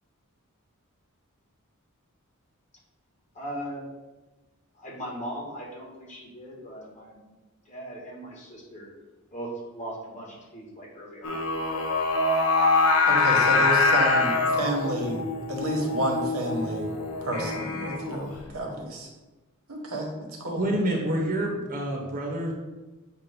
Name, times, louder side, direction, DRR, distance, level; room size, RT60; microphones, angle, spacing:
voice 1, 3.3-3.8 4.8-7.2 7.7-8.9 9.3-11.5, right 1 dB, 35° left, -4 dB, 1.8 m, -39 dB
Singing, 11.2-18.4, left 3 dB, 80° left, 0.9 m, -24 dB
voice 2, 13.1-15.2 15.5-16.9 17.2-19.1 19.7-20.6, right 1 dB, 75° right, 0 dB, 1.3 m, -30 dB
voice 3, 20.6-22.5, right 1 dB, 40° right, 0 dB, 1.0 m, -27 dB
7.3 x 2.5 x 5.3 m, 1.2 s
head